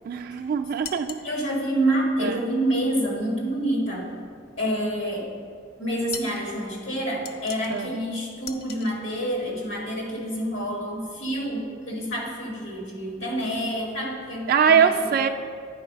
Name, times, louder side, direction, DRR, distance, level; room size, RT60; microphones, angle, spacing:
voice 1, 0.1-1.1 2.2-2.4 7.7-7.9 14.5-15.3, right 7 dB, 50° right, 5 dB, 0.3 m, -22 dB
sound 1, 0.8-1.3 6.1-6.5 7.3-7.8 8.4-8.9, left 6 dB, 55° left, 0.4 m, -39 dB
voice 2, 1.2-4.1 4.6-5.3 5.8-15.1, right 1 dB, 80° left, -2 dB, 1.8 m, -27 dB
9.9 x 4.0 x 5.1 m, 2.2 s
head